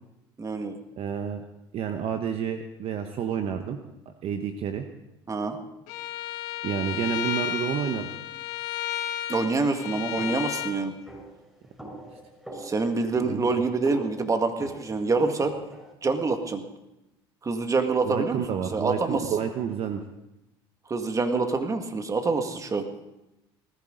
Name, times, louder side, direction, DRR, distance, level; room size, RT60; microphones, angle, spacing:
voice 1, 0.4-0.8 5.3-5.6 9.3-10.9 12.6-15.5 16.0-16.6 17.4-18.4 18.7-19.3 20.9-22.9, right 3 dB, 25° right, 6 dB, 1.9 m, -26 dB
voice 2, 1.0-1.4 1.7-3.8 4.2-4.9 6.6-8.0 13.2-13.5 18.0-20.0, right 8 dB, 50° right, 7 dB, 1.1 m, -29 dB
Bowed string instrument, 5.9-10.7, left 12 dB, 70° left, 1.6 m, -33 dB
sound 1, 10.2-15.9, right 1 dB, 5° right, 6.6 m, -43 dB
19.5 x 14.5 x 3.9 m, 0.93 s
hypercardioid pair, 75°, 12 cm